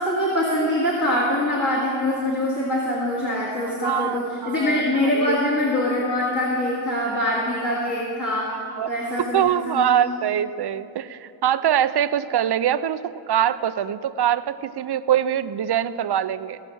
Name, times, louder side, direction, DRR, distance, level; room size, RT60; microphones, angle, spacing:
voice 1, 0.0-8.5 8.9-10.1, left 1 dB, 40° left, -6 dB, 2.3 m, -24 dB
voice 2, 3.8-5.4 8.7-8.9 9.2-16.6, right 10 dB, 60° right, 15 dB, 0.5 m, -23 dB
17.0 x 6.6 x 6.2 m, 2.6 s
wide cardioid pair, 75°, 46 cm